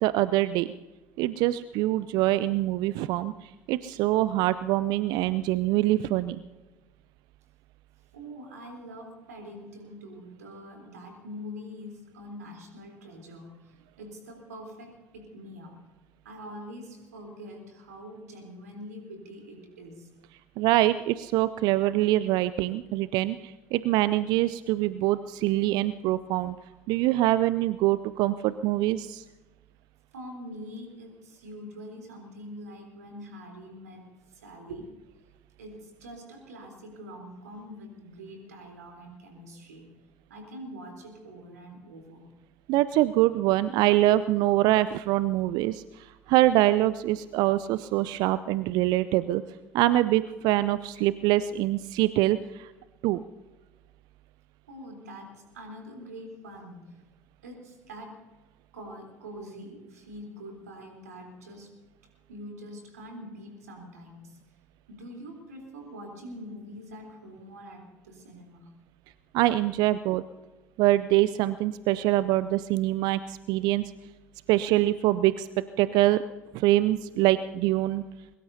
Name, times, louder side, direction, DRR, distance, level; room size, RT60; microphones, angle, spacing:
voice 1, 0.0-0.7 1.2-6.4 20.6-26.6 26.9-29.2 42.7-49.4 49.7-52.7 53.0-53.2 69.3-70.2 70.8-73.8 74.5-75.5 75.8-76.2 76.5-78.0, right 15 dB, 55° right, 16 dB, 0.5 m, -24 dB
voice 2, 8.1-15.8 16.2-20.1 30.1-34.9 35.6-39.9 40.3-42.3 54.7-57.0 57.4-58.2 58.7-61.7 62.3-64.4 64.9-68.7, equal, 75° right, 2 dB, 3.8 m, -44 dB
22.5 x 21.5 x 2.8 m, 1.2 s
figure-of-eight pair, 60°, 9 cm